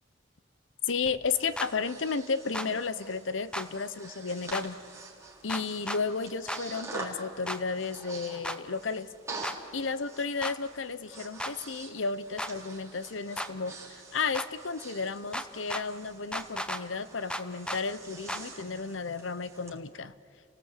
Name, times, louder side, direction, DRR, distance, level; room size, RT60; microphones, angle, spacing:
voice 1, 0.8-4.8 5.4-9.1 9.7-20.1, left 4 dB, 75° left, 15 dB, 0.8 m, -33 dB
Breathing, 1.0-19.8, right 3 dB, 15° right, 3.6 m, -47 dB
sound 1, 1.6-1.7 2.5-2.7 3.5-3.7 4.5-4.6 5.5-6.0 6.5-6.6 7.5-7.6 8.4-8.6 9.4-9.6 10.4-10.6 11.4-11.5 12.4-12.5 13.4-13.5 14.3-14.5 15.3-15.8 16.3-16.8 17.3-17.8 18.3-18.4, equal, 5° left, 0.9 m, -34 dB
30.0 x 18.0 x 8.3 m, 2.3 s
head